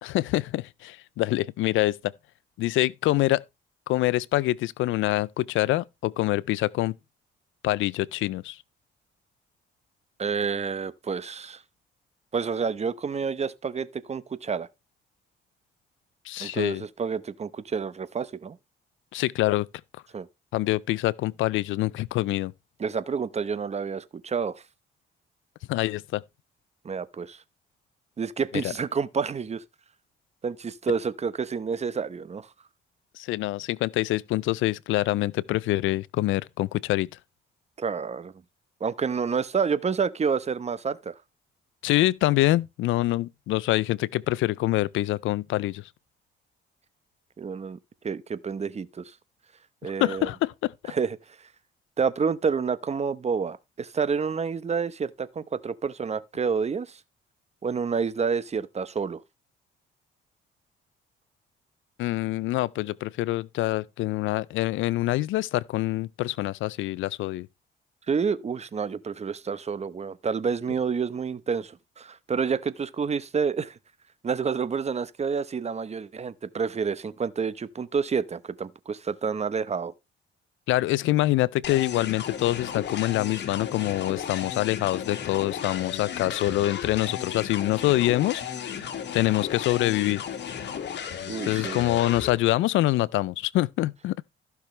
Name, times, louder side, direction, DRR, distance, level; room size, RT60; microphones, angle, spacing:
voice 1, 0.0-2.1 2.6-3.4 3.9-7.0 7.6-8.6 16.3-16.8 19.1-19.7 20.5-22.5 25.7-26.2 28.6-28.7 33.2-37.1 41.8-45.8 49.8-50.7 62.0-67.5 80.7-88.8 89.1-90.2 91.5-94.2, left 16 dB, 80° left, 0.4 m, -25 dB
voice 2, 10.2-11.6 12.3-14.7 16.4-18.6 20.1-20.3 22.8-24.6 26.8-27.4 28.2-29.6 30.4-32.5 37.8-38.3 38.8-41.1 47.4-47.8 48.0-49.0 49.8-50.3 50.9-51.2 52.0-57.0 57.6-59.2 68.1-73.7 74.2-79.9 91.3-91.9, right 6 dB, 35° right, 0.8 m, -29 dB
sound 1, 81.6-92.3, left 8 dB, 60° left, 1.8 m, -34 dB
15.0 x 6.0 x 3.2 m
cardioid pair, 90°, 20 cm